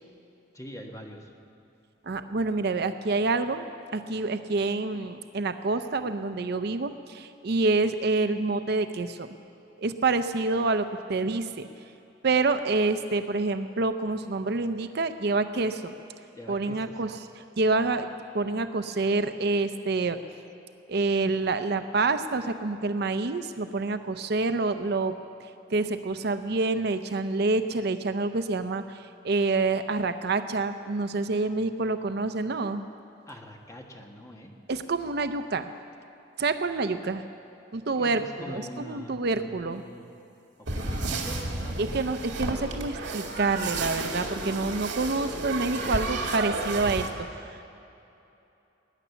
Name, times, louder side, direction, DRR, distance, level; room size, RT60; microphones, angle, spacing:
voice 1, 0.5-1.3 16.3-17.1 33.3-34.6 38.0-40.1 40.6-42.2, equal, 15° left, 1 dB, 1.4 m, -44 dB
voice 2, 2.0-3.7 3.9-9.3 9.8-11.7 12.2-15.9 16.5-18.1 18.3-20.2 20.9-32.8 34.7-35.7 36.4-37.2 37.7-38.2 38.5-39.8 41.8-47.6, right 3 dB, 60° right, 9 dB, 0.6 m, -27 dB
sound 1, 40.7-47.1, right 2 dB, 80° right, 2.1 m, -32 dB
20.0 x 10.0 x 7.0 m, 2.8 s
head